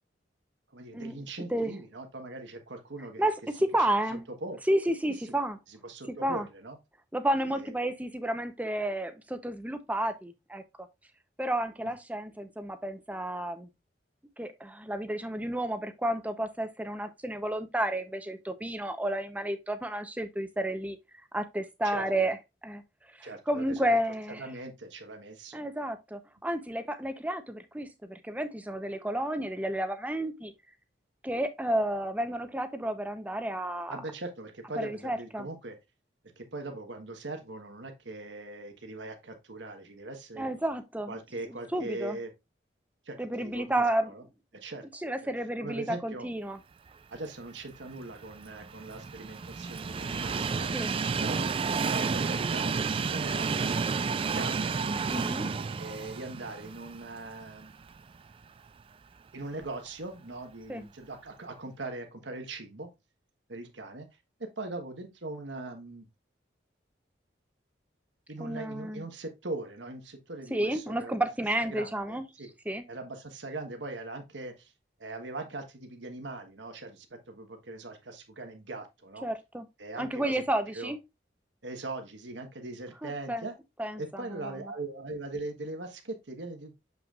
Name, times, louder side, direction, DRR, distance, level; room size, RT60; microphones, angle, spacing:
voice 1, 0.7-3.3 4.4-4.6 5.7-6.8 7.5-7.7 21.8-22.1 23.2-23.9 24.4-25.6 33.9-35.8 36.4-40.5 41.1-42.3 43.0-44.2 44.5-44.8 45.6-46.3 47.1-50.7 51.1-51.5 51.9-54.8 55.0-55.2 55.8-57.7 59.3-62.9 63.5-64.1 64.4-66.1 68.3-71.1 71.7-72.5 72.9-74.7 75.0-79.3 79.8-80.4 80.7-80.9 81.6-83.5 84.0-86.7, right 2 dB, 80° right, 1.3 m, -40 dB
voice 2, 3.2-4.2 4.7-5.6 6.2-6.5 7.1-10.6 11.4-13.7 14.4-21.0 21.3-22.4 22.6-22.8 23.2-24.4 25.5-30.5 31.2-34.0 34.8-35.5 40.4-41.2 41.5-42.2 43.2-44.1 45.0-46.6 50.7-50.9 55.1-55.5 60.7-60.8 68.4-69.0 70.5-72.2 72.7-72.8 79.2-79.7 80.0-81.0 83.0-83.4 83.8-84.6, right 1 dB, 10° right, 0.7 m, -31 dB
Train, 47.9-58.0 58.4-58.5 59.6-59.7, right 5 dB, 30° right, 0.3 m, -31 dB
7.1 x 5.9 x 2.4 m
head